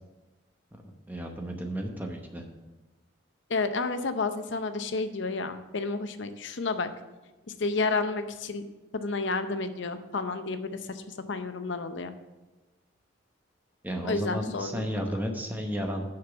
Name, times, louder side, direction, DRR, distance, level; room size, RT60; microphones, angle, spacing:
voice 1, 1.1-2.4 13.8-16.0, equal, 10° right, 2 dB, 0.9 m, -33 dB
voice 2, 3.5-6.9 7.6-8.6 8.9-12.1 14.0-15.1, left 3 dB, 65° left, 9 dB, 0.7 m, -31 dB
6.3 x 6.0 x 7.0 m, 1.1 s
head